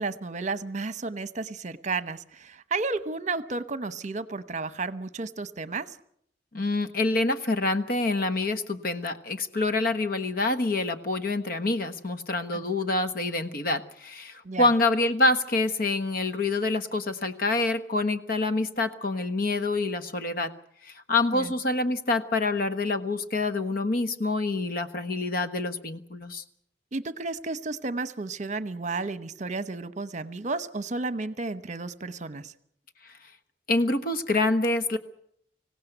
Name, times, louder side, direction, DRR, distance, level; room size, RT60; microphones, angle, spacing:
voice 1, 0.0-5.9 12.5-12.6 14.4-14.7 21.3-21.5 26.9-32.5, right 3 dB, 45° right, 13 dB, 1.0 m, -32 dB
voice 2, 6.5-20.5 20.8-26.4 33.7-35.0, left 2 dB, 55° left, 9 dB, 1.3 m, -26 dB
25.5 x 16.5 x 8.0 m, 0.71 s
head